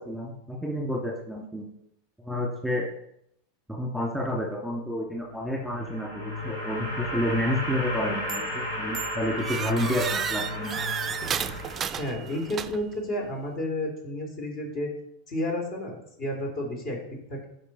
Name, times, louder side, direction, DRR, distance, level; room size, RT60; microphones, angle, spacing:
voice 1, 0.0-1.6 2.2-2.9 3.7-10.8, equal, ahead, -2 dB, 2.1 m, -30 dB
sound 1, 5.4-12.6, left 1 dB, 70° left, 3.4 m, -34 dB
sound 2, 8.3-8.6 8.9-13.0, right 8 dB, 25° right, 0.4 m, -33 dB
voice 2, 12.0-14.9 15.3-17.0 17.3-17.4, left 1 dB, 45° left, 1 dB, 2.9 m, -31 dB
9.7 x 5.6 x 4.0 m, 0.75 s
figure-of-eight pair, 90°, 0 cm